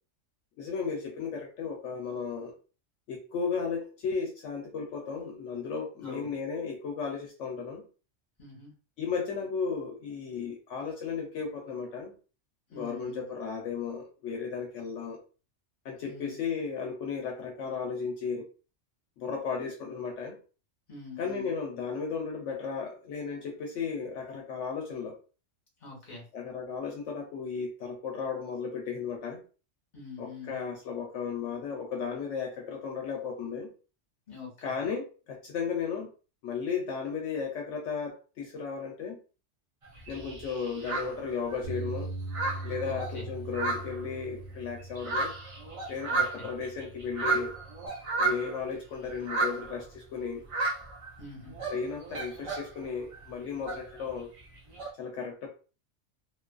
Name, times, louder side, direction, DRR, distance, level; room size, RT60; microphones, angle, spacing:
voice 1, 0.6-2.5 3.1-7.8 9.0-12.2 12.7-15.2 15.8-18.4 19.2-20.4 21.2-25.2 26.3-29.4 30.2-33.7 34.6-36.1 36.4-39.2 40.1-42.1 42.6-45.3 45.9-47.5 48.2-50.4 51.7-54.3 55.0-55.5, left 5 dB, 80° left, 1 dB, 0.9 m, -35 dB
voice 2, 6.0-6.3 8.4-8.7 12.7-13.2 16.0-16.4 20.9-21.5 25.8-26.2 29.9-30.5 34.3-34.7 42.8-43.3 46.1-46.5 51.2-51.5, left 3 dB, 40° left, -2 dB, 1.2 m, -45 dB
sound 1, 39.8-41.8 42.1-44.5 44.8-48.6 49.1-49.8 50.4-51.2 51.4-52.8 53.1-54.9, right 3 dB, 45° right, 0.4 m, -33 dB
Bass guitar, 41.6-47.9, right 2 dB, 90° right, 1.0 m, -41 dB
2.6 x 2.4 x 2.2 m, 0.35 s
omnidirectional pair, 1.3 m